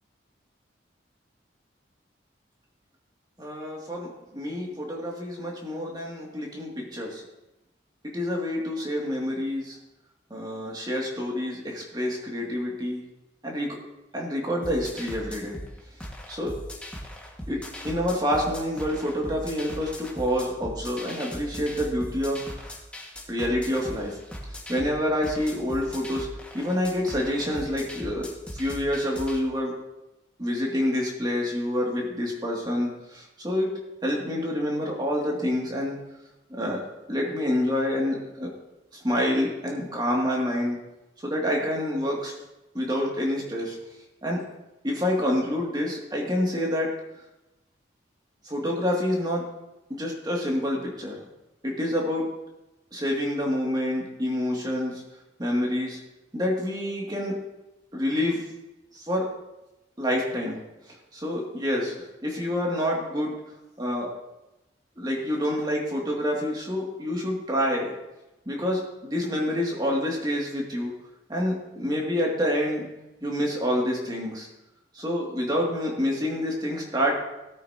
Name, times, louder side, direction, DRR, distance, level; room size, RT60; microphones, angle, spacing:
voice 1, 3.4-7.2 8.1-9.8 10.3-13.0 13.4-13.7 14.1-15.6 16.3-16.5 17.5-17.6 17.8-22.4 23.3-24.2 24.7-26.3 26.5-28.3 28.5-29.7 30.4-33.7 34.0-36.0 36.5-36.8 37.1-38.5 38.9-40.8 41.2-42.3 42.7-43.8 44.2-44.4 44.8-46.9 48.4-49.5 49.9-51.2 51.6-52.3 52.9-55.0 55.4-56.0 56.3-57.3 57.9-58.5 58.9-59.3 60.0-60.6 60.9-61.9 62.2-63.3 63.8-64.1 65.0-67.9 68.5-70.9 71.3-72.9 73.2-74.5 74.9-77.2, left 1 dB, 20° right, -2 dB, 2.5 m, -27 dB
sound 1, 14.6-29.4, equal, 5° left, 1.8 m, -39 dB
17.5 x 8.7 x 2.9 m, 0.98 s
head